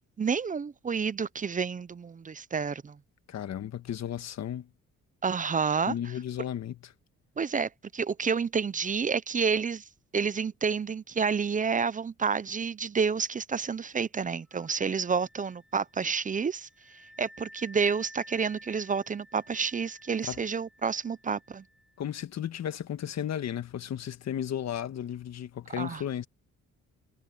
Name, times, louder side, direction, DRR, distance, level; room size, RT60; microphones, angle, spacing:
voice 1, 0.2-3.0 5.2-5.9 7.4-9.8 10.1-16.7 17.2-21.6 25.8-26.0, right 5 dB, 25° right, 0.6 m, -29 dB
voice 2, 3.3-4.7 5.8-6.8 20.2-20.4 22.0-26.3, left 10 dB, 60° left, 1.6 m, -34 dB
Wind instrument woodwind instrument, 14.5-21.9, equal, ahead, 1.9 m, -54 dB
cardioid pair, 90°, 30 cm